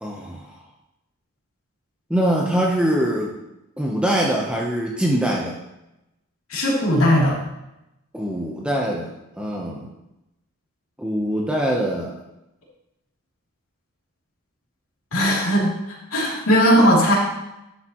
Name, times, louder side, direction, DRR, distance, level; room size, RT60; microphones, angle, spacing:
voice 1, 0.0-0.6 2.1-3.3 3.8-5.6 8.1-9.9 11.0-12.2, right 1 dB, 5° right, -2 dB, 0.9 m, -23 dB
voice 2, 6.5-7.4 15.1-15.7 16.1-17.2, equal, 70° left, -5 dB, 3.2 m, -17 dB
11.5 x 8.0 x 3.1 m, 0.91 s
head